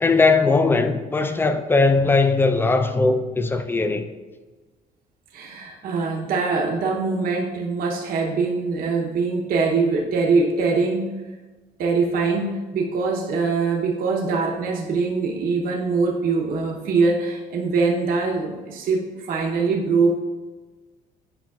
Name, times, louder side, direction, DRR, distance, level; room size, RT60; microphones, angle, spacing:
voice 1, 0.0-4.1, left 3 dB, 15° left, 0.4 m, -19 dB
voice 2, 5.3-11.1 11.8-20.2, right 4 dB, 60° right, 0.8 m, -23 dB
8.9 x 4.9 x 2.3 m
cardioid pair, 110°, 17 cm